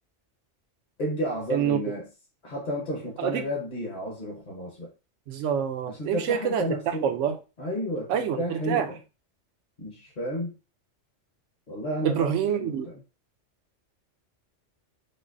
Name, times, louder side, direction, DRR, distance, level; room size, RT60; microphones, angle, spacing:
voice 1, 1.0-2.1 2.4-4.9 5.9-7.1 7.6-9.0 9.8-10.6 11.7-13.0, equal, 40° left, 1.0 m, -32 dB
voice 2, 5.3-7.4 8.1-8.9 12.0-12.9, right 8 dB, 85° right, 0.9 m, -26 dB
5.4 x 2.1 x 2.5 m
omnidirectional pair, 1.2 m